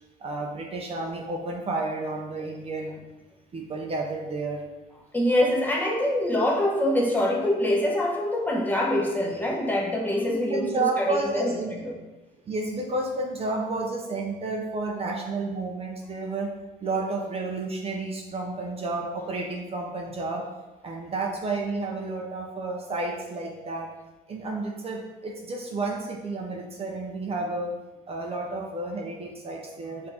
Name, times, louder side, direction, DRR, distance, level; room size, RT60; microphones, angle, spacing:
voice 1, 0.2-3.0 3.5-4.6 10.3-11.7 12.5-16.5 16.8-20.4 20.8-23.9 24.3-27.7 28.1-30.1, right 3 dB, 35° right, 1 dB, 0.6 m, -31 dB
voice 2, 5.1-11.9, left 1 dB, 10° left, -2 dB, 0.8 m, -25 dB
4.2 x 2.6 x 4.1 m, 1.1 s
cardioid pair, 110°, 17 cm